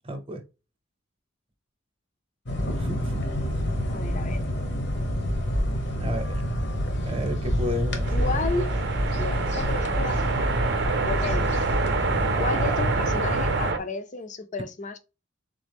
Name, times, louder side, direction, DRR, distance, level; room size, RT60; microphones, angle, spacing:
voice 1, 0.0-0.4 2.7-3.2 6.0-6.4 7.0-8.3 12.5-12.8, left 1 dB, 30° right, 0.8 m, -32 dB
sound 1, 2.5-13.7, equal, 60° left, 1.0 m, -27 dB
voice 2, 3.9-4.4 8.1-8.7 9.2-10.8 11.0-11.5 12.4-15.0, left 3 dB, 40° left, 0.5 m, -32 dB
sound 2, 8.0-13.8, right 4 dB, 55° right, 0.6 m, -28 dB
4.0 x 3.4 x 3.5 m
head